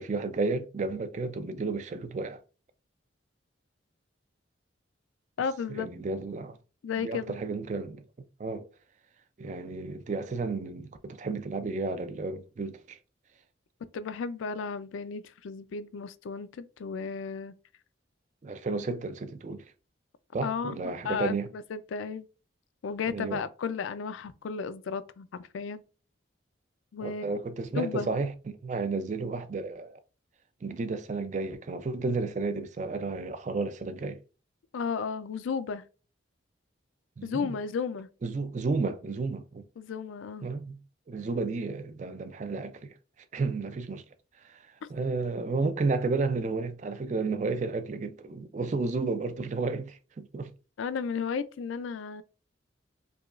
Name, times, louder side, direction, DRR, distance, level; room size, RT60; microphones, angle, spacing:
voice 1, 0.0-2.4 5.7-6.6 7.0-8.0 8.4-8.7 9.4-13.0 18.4-19.6 20.3-21.5 23.1-23.4 27.0-28.3 28.6-30.0 30.6-34.2 37.2-37.6 38.2-39.6 40.4-40.8 41.1-42.9 43.3-44.0 44.4-44.6 44.9-50.5, right 3 dB, 35° right, 0.3 m, -32 dB
voice 2, 5.4-5.9 6.8-7.4 13.9-17.5 20.4-22.3 22.8-25.8 26.9-27.2 27.8-28.1 34.7-35.8 37.2-38.1 39.8-40.5 50.8-52.2, left 5 dB, 80° left, 0.4 m, -34 dB
4.8 x 2.3 x 2.4 m
head